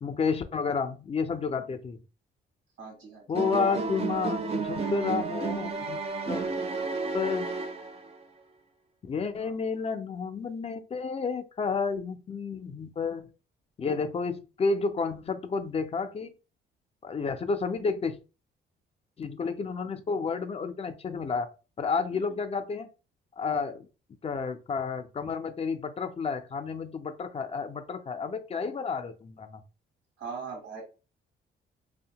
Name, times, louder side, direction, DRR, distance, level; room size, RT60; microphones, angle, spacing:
voice 1, 0.0-2.0 3.3-6.0 6.3-6.5 7.1-7.5 9.0-13.3 13.8-16.3 17.0-18.2 19.2-21.5 21.8-22.9 23.4-23.9 24.2-29.6, left 5 dB, 30° left, 10 dB, 0.4 m, -31 dB
voice 2, 2.8-3.3 9.4-9.5 22.1-22.3 30.2-30.8, right 5 dB, 85° right, -1 dB, 1.2 m, -40 dB
sound 1, 3.3-8.2, right 4 dB, 30° right, 0.5 m, -32 dB
2.6 x 2.1 x 2.8 m, 0.32 s
cardioid pair, 90°, 20 cm